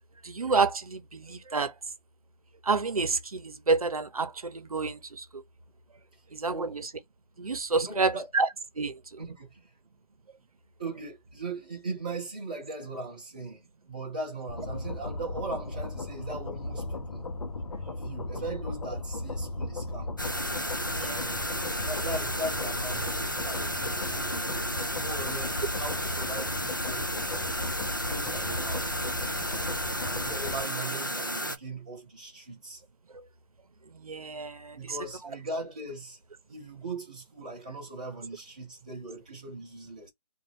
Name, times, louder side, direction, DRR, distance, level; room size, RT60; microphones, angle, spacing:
voice 1, 0.2-1.7 2.6-5.4 6.3-6.9 7.4-8.5 8.8-9.2 20.9-21.4 29.4-30.0 33.9-35.0, right 4 dB, 60° right, 0.8 m, -29 dB
voice 2, 6.4-6.8 7.8-8.3 9.2-9.7 10.8-17.2 17.9-20.1 21.0-21.4 21.8-27.3 27.8-29.0 30.0-32.8 34.7-36.2 36.5-40.1, right 2 dB, 10° right, 0.7 m, -39 dB
sound 1, 14.5-30.6, left 2 dB, 65° left, 0.7 m, -36 dB
sound 2, 20.2-31.6, equal, 30° left, 0.4 m, -33 dB
3.5 x 2.4 x 3.3 m
hypercardioid pair, 180°, 20 cm